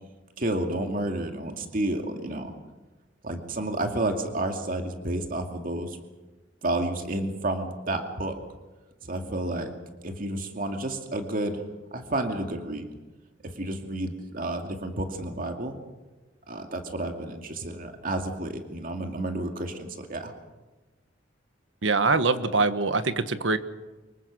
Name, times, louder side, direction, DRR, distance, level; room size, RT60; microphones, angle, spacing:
voice 1, 0.4-2.5 3.2-6.0 6.6-8.4 9.0-9.7 10.0-11.6 11.9-12.9 13.4-15.7 16.5-20.3, right 1 dB, 50° right, 4 dB, 2.4 m, -30 dB
voice 2, 21.8-23.6, right 3 dB, 85° right, 10 dB, 1.5 m, -23 dB
25.5 x 22.5 x 6.3 m, 1.2 s
head